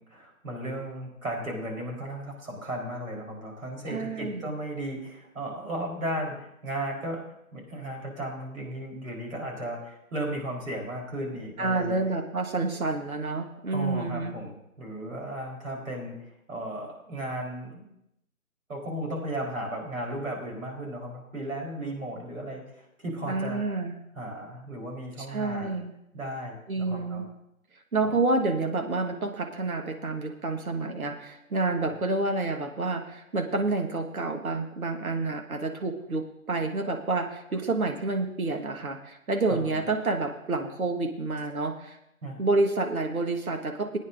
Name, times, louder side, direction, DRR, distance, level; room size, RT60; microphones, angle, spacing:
voice 1, 0.0-7.2 7.5-12.0 13.7-17.8 18.7-23.6 24.2-25.8 26.1-27.2 28.0-28.2 31.8-32.0 39.5-39.8 42.2-42.4, right 1 dB, 70° right, 0 dB, 4.0 m, -35 dB
voice 2, 3.9-4.4 11.6-14.3 23.3-24.0 25.3-25.9 26.7-27.3 27.9-42.0 42.4-44.0, right 3 dB, 85° right, 4 dB, 1.6 m, -29 dB
19.0 x 9.3 x 2.6 m, 0.81 s
figure-of-eight pair, 160°, 42 cm